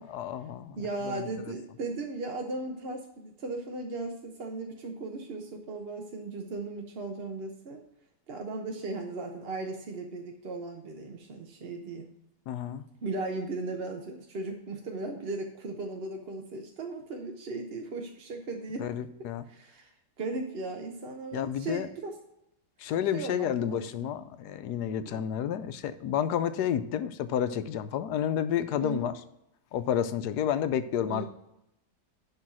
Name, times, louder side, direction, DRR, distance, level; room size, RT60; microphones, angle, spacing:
voice 1, 0.0-1.5 12.5-12.8 18.8-19.4 21.3-21.9 22.8-29.2 29.7-31.3, left 9 dB, 85° left, 12 dB, 1.2 m, -30 dB
voice 2, 0.8-7.8 8.3-12.1 13.0-18.9 19.5-19.9 20.2-22.1 23.1-23.8 24.9-25.3 28.8-29.1 31.1-31.3, right 3 dB, 45° right, 2 dB, 0.9 m, -37 dB
11.0 x 3.9 x 6.0 m, 0.85 s
omnidirectional pair, 1.7 m